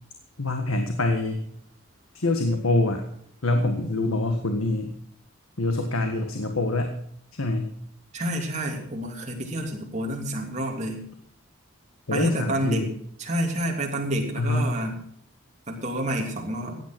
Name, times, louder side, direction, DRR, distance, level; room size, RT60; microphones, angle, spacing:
voice 1, 0.4-1.4 2.1-3.0 3.4-4.9 5.6-6.9 7.3-7.7 12.1-12.9 14.4-14.8, left 2 dB, 85° left, 5 dB, 1.6 m, -25 dB
voice 2, 8.1-11.0 12.1-12.9 13.2-15.0 15.7-16.8, right 1 dB, 35° right, 1 dB, 2.9 m, -29 dB
15.0 x 9.5 x 6.1 m, 0.64 s
head